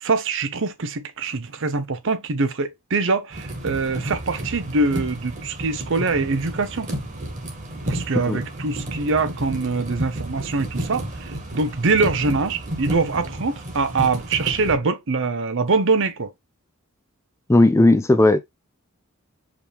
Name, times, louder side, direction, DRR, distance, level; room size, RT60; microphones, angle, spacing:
voice 1, 0.0-6.9 7.8-16.3, right 3 dB, 60° right, 0.7 m, -23 dB
sound 1, 3.3-14.7, right 1 dB, 35° right, 1.5 m, -31 dB
voice 2, 17.5-18.4, left 2 dB, 15° left, 0.4 m, -15 dB
5.0 x 3.1 x 3.4 m
head